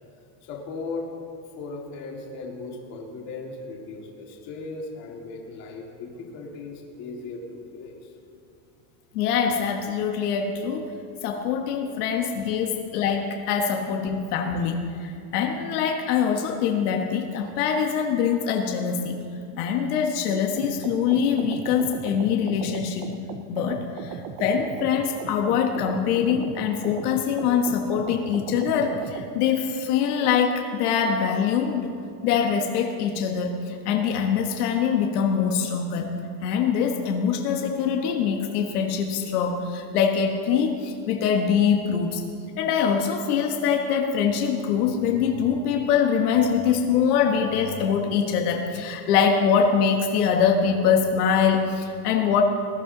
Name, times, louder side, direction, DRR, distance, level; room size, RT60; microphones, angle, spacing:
voice 1, 0.4-1.1 1.6-8.1 13.7-13.8, left 3 dB, 35° left, -1 dB, 2.1 m, -37 dB
voice 2, 9.1-10.8 11.2-19.1 19.6-23.2 23.5-31.9 32.2-36.1 36.4-42.2 42.6-52.4, left 7 dB, 80° left, 2 dB, 1.4 m, -23 dB
sound 1, 20.6-29.3, right 6 dB, 30° right, 0.4 m, -38 dB
20.0 x 12.0 x 3.9 m, 2.5 s
supercardioid pair, 175°, 45 cm